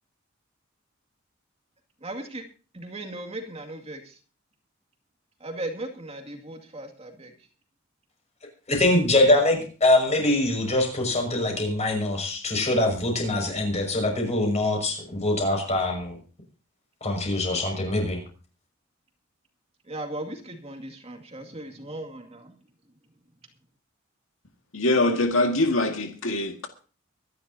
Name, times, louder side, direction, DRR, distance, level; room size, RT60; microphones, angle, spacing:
voice 1, 2.0-2.4 2.7-4.1 5.4-7.3 17.5-17.6 19.9-22.5, right 1 dB, 30° right, 2.2 m, -37 dB
voice 2, 8.7-16.2 17.0-18.2, left 1 dB, 35° left, 6.0 m, -23 dB
voice 3, 24.7-26.7, left 2 dB, 75° left, 2.0 m, -23 dB
24.5 x 11.0 x 2.8 m
head